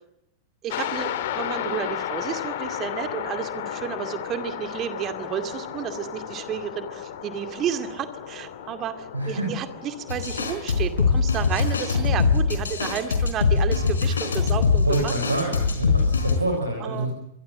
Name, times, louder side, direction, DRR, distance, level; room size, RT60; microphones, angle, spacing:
voice 1, 0.6-15.1 16.8-17.1, right 9 dB, 30° right, 8 dB, 2.3 m, -31 dB
sound 1, 0.7-12.7, left 10 dB, 55° left, 3.0 m, -34 dB
voice 2, 9.1-9.5 14.8-17.1, right 2 dB, 80° right, 2 dB, 6.0 m, -27 dB
sound 2, 10.1-16.4, left 5 dB, 75° left, 4.2 m, -22 dB
26.0 x 22.5 x 7.7 m, 0.78 s
figure-of-eight pair, 90°, 0 cm